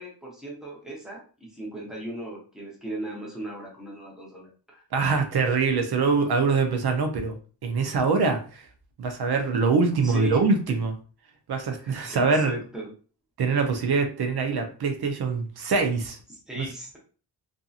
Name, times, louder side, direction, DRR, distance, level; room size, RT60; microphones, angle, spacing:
voice 1, 0.0-4.8 10.0-10.4 11.7-12.9 16.3-17.0, right 1 dB, ahead, -3 dB, 0.8 m, -38 dB
voice 2, 4.9-8.6 9.0-10.9 11.5-12.6 13.4-16.2 16.6-16.7, right 4 dB, 65° right, 5 dB, 0.6 m, -24 dB
2.7 x 2.5 x 2.4 m, 0.38 s
wide cardioid pair, 175°, 42 cm